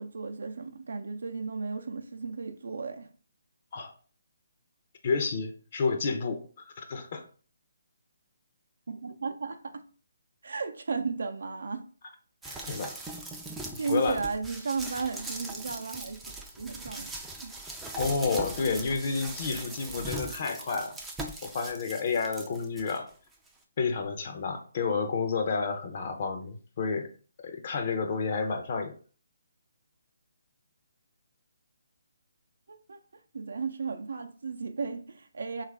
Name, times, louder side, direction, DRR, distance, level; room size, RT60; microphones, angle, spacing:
voice 1, 0.0-3.1 8.9-9.8 10.4-11.9 12.4-12.8 13.8-16.2 16.6-17.1 17.4-17.5 32.7-33.0 33.3-35.6, right 4 dB, 70° right, 0.4 m, -34 dB
voice 2, 5.0-7.2 12.7-13.0 13.9-14.2 18.0-21.0 21.4-23.1 23.8-27.1 27.4-28.9, left 4 dB, 45° left, 0.6 m, -30 dB
sound 1, 12.4-23.0 23.5-23.6, right 2 dB, 5° right, 0.3 m, -40 dB
3.3 x 2.4 x 3.2 m
figure-of-eight pair, 150°, 0 cm